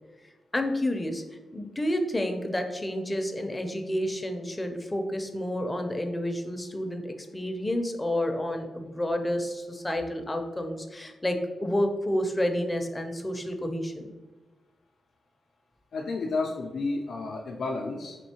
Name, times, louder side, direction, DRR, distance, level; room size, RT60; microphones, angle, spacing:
voice 1, 0.5-1.2 1.5-14.1, left 1 dB, 15° left, 5 dB, 0.5 m, -30 dB
voice 2, 15.9-18.2, left 3 dB, 70° left, -1 dB, 0.4 m, -31 dB
4.4 x 2.7 x 2.8 m, 1.2 s
cardioid pair, 70°, 0 cm